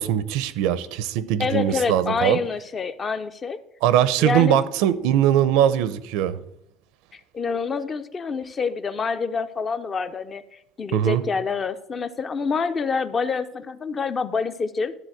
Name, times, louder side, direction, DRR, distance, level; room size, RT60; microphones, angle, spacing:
voice 1, 0.0-2.4 3.8-6.4 10.9-11.2, right 11 dB, 80° right, 16 dB, 0.7 m, -21 dB
voice 2, 1.4-3.6 4.2-4.6 7.1-14.9, left 5 dB, 25° left, 11 dB, 0.5 m, -27 dB
12.0 x 4.1 x 7.8 m, 0.77 s
cardioid pair, 160°, 0 cm